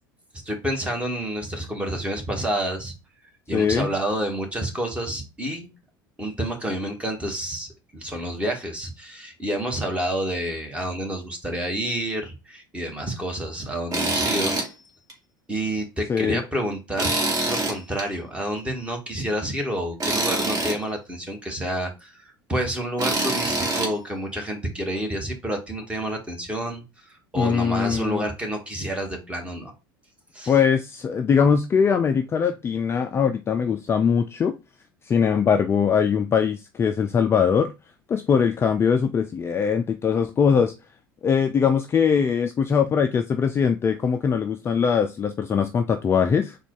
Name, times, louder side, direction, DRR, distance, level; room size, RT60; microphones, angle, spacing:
voice 1, 0.4-2.9 3.5-5.7 6.2-14.5 15.5-17.2 17.5-29.7 30.3-30.5, right 1 dB, 10° right, 2 dB, 1.4 m, -29 dB
voice 2, 3.5-3.9 16.1-16.4 27.4-28.3 30.5-34.5 35.0-37.7 38.1-40.7 41.2-46.6, left 6 dB, 20° left, 7 dB, 0.4 m, -21 dB
Tools, 13.9-14.7 15.1-15.2 17.0-18.0 20.0-20.8 23.0-23.9, right 2 dB, 30° right, 1.5 m, -24 dB
4.0 x 2.3 x 4.5 m, 0.26 s
figure-of-eight pair, 70°, 11 cm